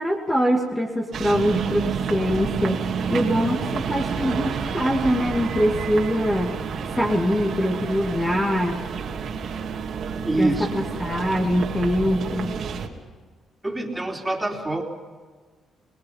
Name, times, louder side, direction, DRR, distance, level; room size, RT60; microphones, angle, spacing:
voice 1, 0.0-6.6 6.9-8.8 10.3-12.6, equal, 15° left, 0 dB, 2.5 m, -23 dB
sound 1, 1.1-12.9, right 6 dB, 65° right, 2.7 m, -29 dB
voice 2, 10.2-10.7 13.6-14.8, right 2 dB, 10° right, 1 dB, 4.0 m, -25 dB
27.5 x 20.5 x 5.7 m, 1.4 s
cardioid pair, 90°, 0 cm